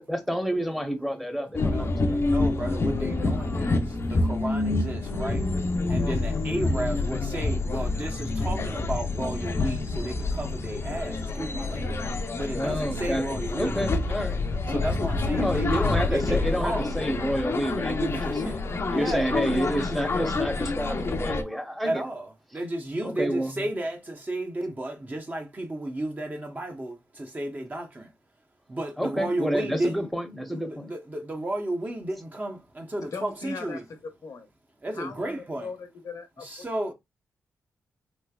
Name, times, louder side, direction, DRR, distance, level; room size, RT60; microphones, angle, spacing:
voice 1, 0.0-1.9 10.3-10.4 12.5-13.2 13.6-14.4 15.3-22.0 23.0-23.5 29.0-30.9, equal, ahead, 0.9 m, -29 dB
sound 1, 1.5-21.4, left 3 dB, 45° left, 0.6 m, -27 dB
voice 2, 1.6-5.4 5.9-12.0 12.4-13.7 14.7-17.0 18.1-18.5 18.9-19.3 21.8-28.1 28.7-30.1 30.6-33.9 34.8-35.7 36.4-36.9, right 1 dB, 30° right, 0.9 m, -33 dB
voice 3, 33.1-34.5 34.9-36.6, left 4 dB, 65° left, 0.9 m, -39 dB
3.2 x 3.1 x 2.3 m
cardioid pair, 60°, 6 cm